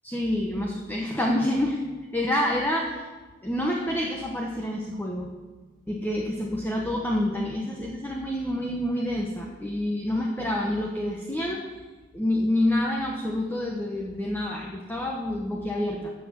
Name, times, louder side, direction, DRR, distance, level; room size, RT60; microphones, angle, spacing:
voice 1, 0.0-1.8 2.1-3.1 3.4-5.3 5.9-11.7 12.1-16.1, left 1 dB, 10° left, -1 dB, 1.0 m, -27 dB
15.5 x 6.4 x 7.6 m, 1.3 s
head